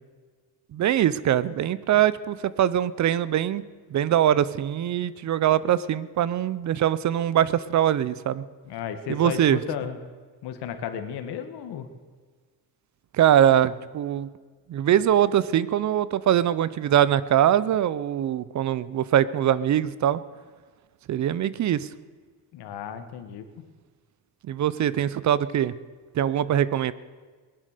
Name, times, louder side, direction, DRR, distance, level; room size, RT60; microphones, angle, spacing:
voice 1, 0.7-3.6 3.9-8.4 9.1-9.6 13.1-14.3 14.7-20.2 21.1-21.9 24.5-25.7 26.1-26.9, right 10 dB, 45° right, 18 dB, 0.6 m, -22 dB
voice 2, 8.6-10.0 10.4-11.9 22.5-23.6, left 8 dB, 85° left, 8 dB, 1.6 m, -34 dB
19.5 x 10.5 x 6.6 m, 1.5 s
cardioid pair, 140°, 39 cm